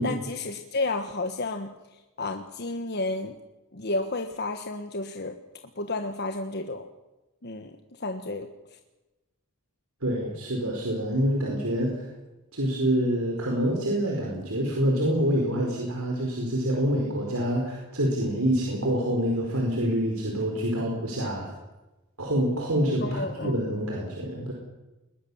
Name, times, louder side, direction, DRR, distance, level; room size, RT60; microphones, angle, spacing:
voice 1, 0.0-1.7 2.2-3.4 3.7-5.4 5.8-6.9 7.4-8.5 23.0-23.6, left 2 dB, 50° left, 6 dB, 1.4 m, -31 dB
voice 2, 10.0-12.1 12.5-21.5 22.2-24.5, equal, 85° right, 0 dB, 4.7 m, -26 dB
21.0 x 21.0 x 7.2 m, 1.0 s
head